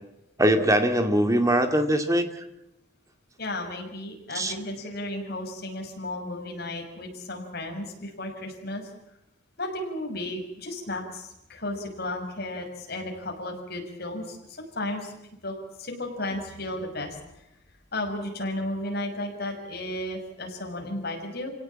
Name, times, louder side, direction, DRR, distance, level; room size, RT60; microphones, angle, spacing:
voice 1, 0.4-2.3 4.3-4.5, right 1 dB, 15° right, 7 dB, 2.3 m, -21 dB
voice 2, 3.4-8.9 9.6-15.1 15.4-17.2 17.9-21.5, left 1 dB, 55° left, 2 dB, 6.1 m, -34 dB
28.5 x 17.0 x 8.7 m, 0.86 s
head